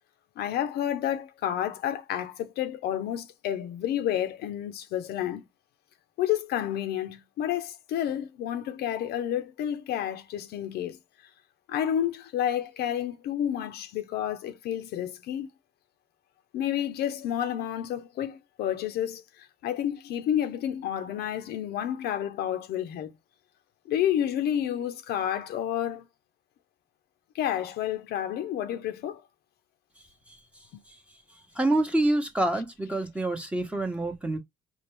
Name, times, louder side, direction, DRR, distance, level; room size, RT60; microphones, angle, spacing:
voice 1, 0.4-5.4 6.2-11.0 11.7-15.5 16.5-23.1 23.9-26.1 27.3-29.2 30.7-30.8, left 10 dB, 75° left, 0.7 m, -30 dB
voice 2, 31.5-34.4, right 2 dB, 5° right, 1.0 m, -27 dB
4.3 x 2.3 x 3.3 m
cardioid pair, 110°, 17 cm